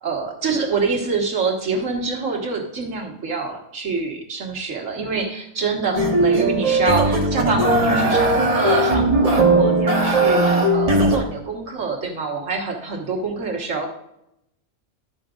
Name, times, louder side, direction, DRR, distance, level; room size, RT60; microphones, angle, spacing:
voice 1, 0.0-13.9, right 4 dB, 85° right, 1 dB, 1.9 m, -26 dB
sound 1, 6.0-11.2, right 2 dB, 30° right, 1.1 m, -18 dB
12.0 x 8.7 x 2.5 m, 0.81 s
omnidirectional pair, 1.3 m